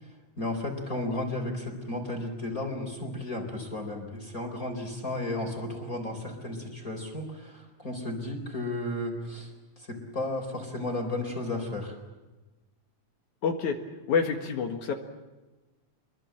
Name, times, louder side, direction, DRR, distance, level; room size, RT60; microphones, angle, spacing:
voice 1, 0.0-11.9, left 2 dB, 25° left, 3 dB, 4.2 m, -34 dB
voice 2, 13.4-13.8 14.1-14.9, left 6 dB, 70° left, 3 dB, 3.1 m, -27 dB
27.5 x 22.5 x 7.8 m, 1.1 s
omnidirectional pair, 3.5 m